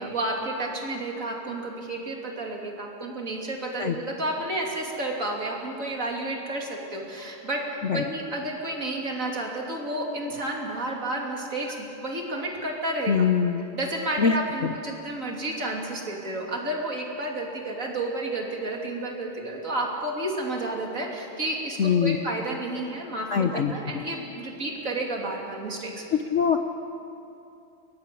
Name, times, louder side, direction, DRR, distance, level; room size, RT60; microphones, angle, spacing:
voice 1, 0.0-13.1 13.7-26.0, right 1 dB, 40° right, 0 dB, 3.3 m, -31 dB
voice 2, 13.1-13.6 14.2-14.4 14.6-14.7 21.8-22.2 23.3-24.0 26.1-26.6, left 7 dB, 60° left, 6 dB, 0.8 m, -23 dB
22.5 x 19.0 x 8.4 m, 2.7 s
omnidirectional pair, 2.3 m